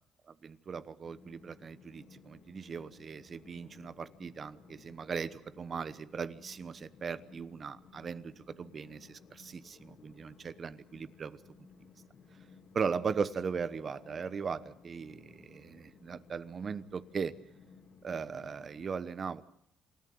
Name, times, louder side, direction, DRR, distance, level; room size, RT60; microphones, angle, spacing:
voice 1, 0.4-11.4 12.7-17.3 18.0-19.4, right 6 dB, 40° right, 15 dB, 1.1 m, -38 dB
Train, 1.0-18.9, left 5 dB, 50° left, 3.1 m, -58 dB
28.0 x 13.5 x 9.4 m, 0.73 s
cardioid pair, 115°, 0 cm